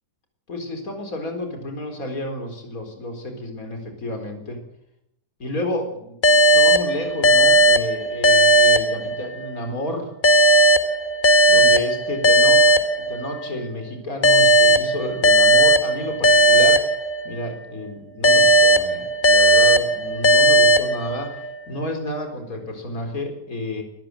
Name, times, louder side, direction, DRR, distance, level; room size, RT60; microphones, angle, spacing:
voice 1, 0.5-4.6 5.4-10.1 11.5-12.8 13.1-17.0 17.2-23.8, left 1 dB, 50° left, 4 dB, 4.6 m, -31 dB
sound 1, 6.2-9.6 10.2-13.5 14.2-17.6 18.2-21.5, right 1 dB, 30° left, 1.2 m, -16 dB
25.0 x 15.0 x 7.7 m, 0.80 s
omnidirectional pair, 1.9 m